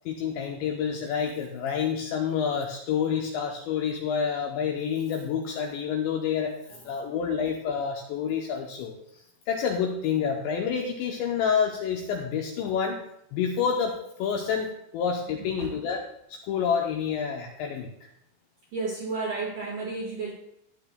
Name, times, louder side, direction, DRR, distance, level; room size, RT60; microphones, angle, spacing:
voice 1, 0.1-6.5 6.8-13.0 13.3-16.0 16.3-17.9, left 7 dB, 80° left, 1 dB, 2.6 m, -28 dB
voice 2, 6.7-7.1 15.4-15.7 18.7-20.3, right 3 dB, 65° right, -3 dB, 2.1 m, -33 dB
14.5 x 9.8 x 2.2 m, 0.77 s
omnidirectional pair, 5.9 m